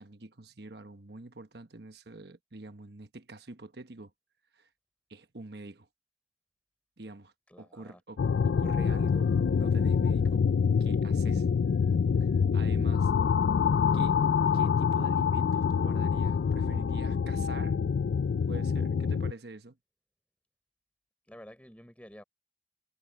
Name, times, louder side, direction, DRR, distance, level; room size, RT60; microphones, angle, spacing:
voice 1, 0.0-4.1 4.5-4.7 5.1-5.9 7.0-10.4 10.8-11.5 12.2-13.1 13.9-14.2 14.5-17.8 18.5-19.8, right 2 dB, 60° right, 1.2 m, -46 dB
voice 2, 7.5-8.0 21.3-22.2, equal, 5° left, 3.7 m, -50 dB
sound 1, 8.2-19.3, left 6 dB, 70° left, 0.4 m, -26 dB
head